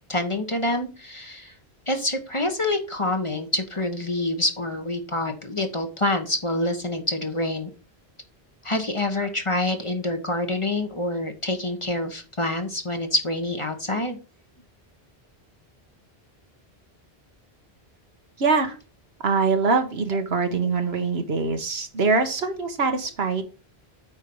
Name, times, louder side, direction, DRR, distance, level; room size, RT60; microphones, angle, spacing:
voice 1, 0.1-1.5 1.9-7.7 8.6-14.2, left 1 dB, 30° left, 5 dB, 1.3 m, -26 dB
voice 2, 18.4-18.7 19.2-23.4, right 4 dB, 75° right, 7 dB, 1.5 m, -23 dB
8.5 x 4.6 x 5.3 m, 0.34 s
omnidirectional pair, 1.1 m